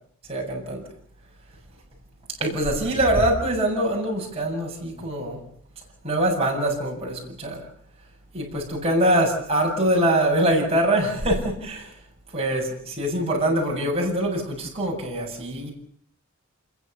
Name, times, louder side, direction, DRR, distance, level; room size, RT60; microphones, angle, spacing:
voice 1, 0.3-0.8 2.4-5.4 6.0-7.6 8.3-11.9 12.3-15.7, right 1 dB, 25° right, -1 dB, 7.7 m, -23 dB
27.5 x 22.5 x 7.0 m, 0.62 s
head